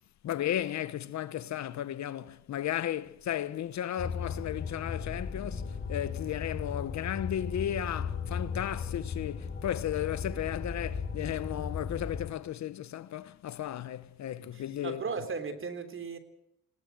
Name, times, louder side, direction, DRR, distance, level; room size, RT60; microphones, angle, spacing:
voice 1, 0.2-15.0, left 11 dB, 65° left, 1.0 m, -34 dB
sound 1, 4.0-12.3, left 5 dB, 40° left, 4.3 m, -36 dB
voice 2, 14.4-16.2, right 5 dB, 45° right, 3.5 m, -37 dB
20.0 x 18.0 x 8.0 m
cardioid pair, 90°, 30 cm